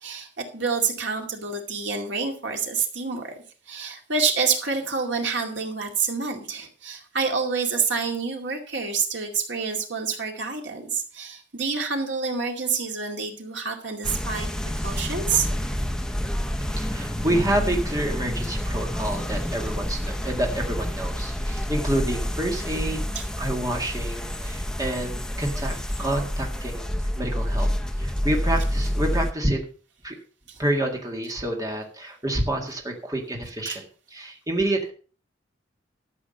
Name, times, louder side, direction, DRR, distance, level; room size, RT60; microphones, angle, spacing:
voice 1, 0.0-3.3 3.7-14.5 14.8-15.5 23.2-23.3 30.5-30.6 33.7-33.8, right 5 dB, 70° right, 2 dB, 2.3 m, -27 dB
sound 1, 14.0-29.3, equal, 5° left, 0.6 m, -28 dB
voice 2, 16.6-23.0 23.4-27.7 28.0-29.6 30.0-30.2 30.6-34.9, right 1 dB, 20° right, 1 dB, 1.8 m, -28 dB
13.0 x 7.6 x 5.3 m, 0.40 s
head